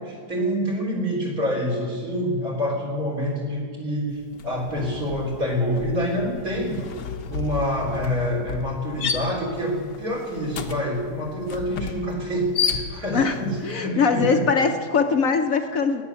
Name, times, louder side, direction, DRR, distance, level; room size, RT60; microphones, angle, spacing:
voice 1, 0.3-6.8 7.3-14.4, equal, 55° right, -1 dB, 4.3 m, -26 dB
Thunder, 4.1-6.7, equal, 90° right, 5.0 m, -44 dB
sound 1, 4.3-4.6 4.9-13.4, left 6 dB, 80° left, 1.6 m, -32 dB
voice 2, 13.6-16.0, left 5 dB, 60° left, 6 dB, 1.1 m, -21 dB
17.0 x 10.5 x 7.0 m, 2.1 s
omnidirectional pair, 1.8 m